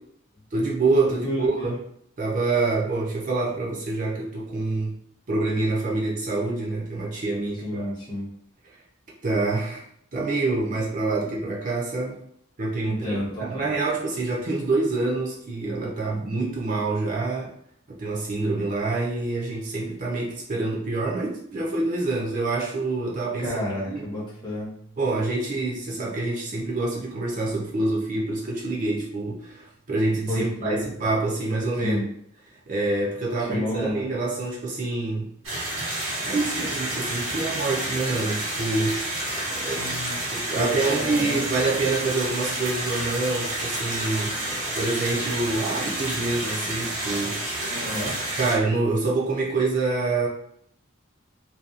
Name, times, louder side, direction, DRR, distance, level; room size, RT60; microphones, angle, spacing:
voice 1, 0.5-1.8 2.2-5.0 5.3-7.9 9.2-9.8 10.1-12.2 12.6-17.5 17.9-23.5 23.9-24.0 25.0-32.0 32.7-35.3 36.2-39.1 39.5-39.8 40.3-44.4 44.7-47.4 48.0-48.1 48.4-50.3, right 3 dB, 40° right, -3 dB, 0.5 m, -26 dB
voice 2, 1.2-1.7 7.6-8.3 12.8-13.7 23.4-24.7 30.3-30.8 31.8-32.0 33.4-34.1 39.7-40.3 40.5-41.4 47.7-48.1, left 1 dB, 20° left, -6 dB, 0.6 m, -31 dB
sound 1, 23.5-31.9, right 2 dB, 65° left, 0.8 m, -51 dB
sound 2, 35.4-48.5, right 1 dB, 85° right, 1.2 m, -29 dB
2.8 x 2.2 x 2.4 m, 0.68 s
head